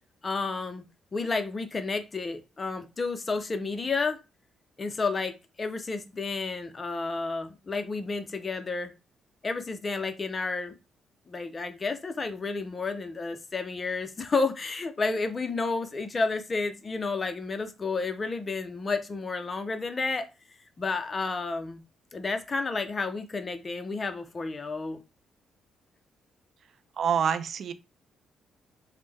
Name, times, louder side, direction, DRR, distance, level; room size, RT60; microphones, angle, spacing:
voice 1, 0.2-0.8 1.1-4.2 4.8-5.3 5.6-8.9 9.4-10.7 11.3-20.3 20.8-21.8 22.1-25.0, left 4 dB, 30° left, 0.5 m, -31 dB
voice 2, 27.0-27.7, right 7 dB, 60° right, 0.3 m, -26 dB
3.1 x 2.1 x 3.3 m
cardioid pair, 90°, 0 cm